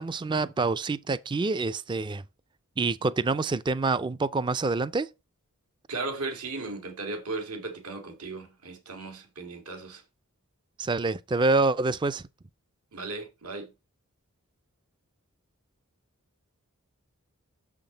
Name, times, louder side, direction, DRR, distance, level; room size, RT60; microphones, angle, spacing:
voice 1, 0.0-2.2 2.8-5.1 10.8-12.2, right 3 dB, 20° right, 0.3 m, -26 dB
voice 2, 5.9-10.0 12.9-13.7, right 3 dB, 85° right, 2.0 m, -36 dB
7.0 x 5.9 x 3.8 m
head